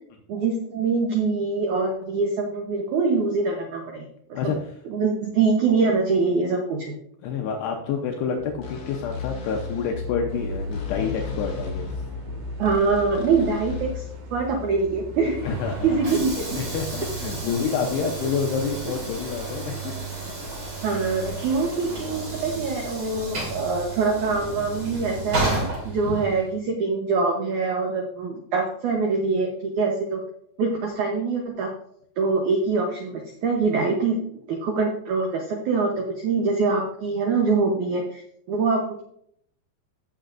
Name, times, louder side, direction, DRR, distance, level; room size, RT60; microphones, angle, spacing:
voice 1, 0.3-4.0 4.3-4.5 4.8-6.9 12.6-15.4 15.8-16.6 20.8-30.2 30.6-31.7 32.2-38.2 38.5-39.0, right 4 dB, 85° right, 1 dB, 1.7 m, -24 dB
voice 2, 7.2-11.9 15.4-16.2 16.5-19.9 26.0-26.4, left 6 dB, 75° left, 1 dB, 2.8 m, -28 dB
sound 1, 8.4-13.9, left 6 dB, 60° left, 1.7 m, -35 dB
sound 2, 10.3-17.4, left 1 dB, 60° right, 3.1 m, -37 dB
Train / Sliding door, 15.1-26.5, right 2 dB, 40° right, 3.7 m, -32 dB
15.0 x 6.9 x 2.5 m, 0.70 s
omnidirectional pair, 5.0 m